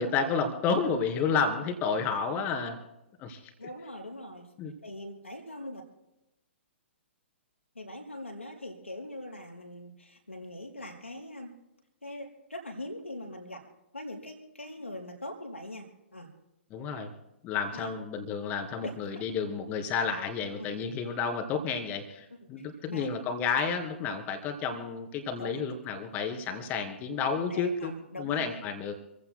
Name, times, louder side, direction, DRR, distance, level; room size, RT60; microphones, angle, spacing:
voice 1, 0.0-2.8 3.2-3.4 4.6-4.7 16.7-17.1 17.4-27.9 28.2-28.9, left 5 dB, 25° left, 5 dB, 2.5 m, -31 dB
voice 2, 3.6-4.5 4.8-5.8 7.7-11.5 12.0-13.7 13.9-15.8 16.1-16.3 17.7-17.9 18.8-18.9 20.6-20.7 22.4-23.1 25.4-25.6 27.5-28.6, left 1 dB, 85° left, 0 dB, 4.2 m, -42 dB
27.5 x 16.0 x 2.2 m, 0.90 s
figure-of-eight pair, 120°, 7 cm